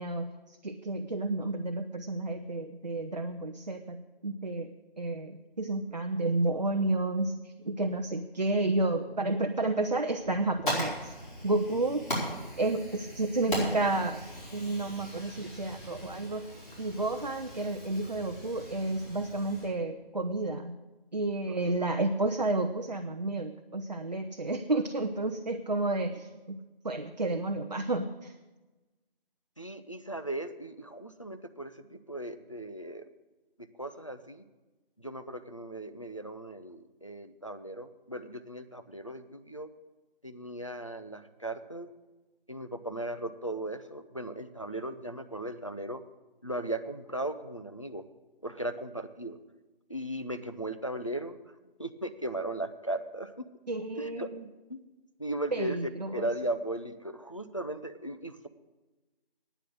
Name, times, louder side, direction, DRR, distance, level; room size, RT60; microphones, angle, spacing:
voice 1, 0.0-11.1 11.4-12.0 12.6-14.2 14.5-16.5 16.8-20.8 21.1-26.6 26.8-28.4 53.7-54.5 55.5-56.3, right 2 dB, 45° right, 5 dB, 0.6 m, -31 dB
Fire, 10.2-19.7, equal, 55° left, 4.5 m, -39 dB
voice 2, 29.6-33.1 33.6-34.4 35.0-39.7 40.2-41.9 42.5-46.0 46.4-48.0 48.4-49.4 49.9-51.4 51.8-53.5 54.0-54.3 54.7-54.8 55.2-58.5, right 1 dB, 35° left, 9 dB, 0.4 m, -37 dB
9.3 x 7.2 x 8.9 m, 1.2 s
figure-of-eight pair, 170°, 29 cm